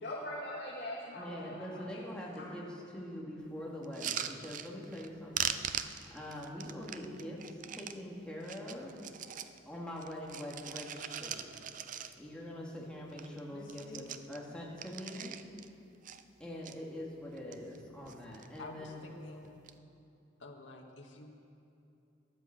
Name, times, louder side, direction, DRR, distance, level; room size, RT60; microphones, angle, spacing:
voice 1, 0.0-2.1, left 1 dB, 55° left, -6 dB, 2.2 m, -42 dB
voice 2, 1.1-5.6 6.1-9.4 9.7-11.5 12.2-15.4 16.4-19.0, left 1 dB, 5° left, -4 dB, 2.3 m, -44 dB
sound 1, 3.8-5.1 5.3-8.0 8.4-9.6 10.0-12.4 12.8-12.9 13.1-13.4 13.6-15.7 16.0-16.7 17.3-17.8 18.1-18.6 19.4-19.7, right 9 dB, 45° right, 0.5 m, -41 dB
voice 3, 13.5-14.1 18.6-19.6 20.4-21.3, left 2 dB, 75° left, 1 dB, 1.7 m, -50 dB
13.0 x 11.0 x 7.8 m, 2.8 s
head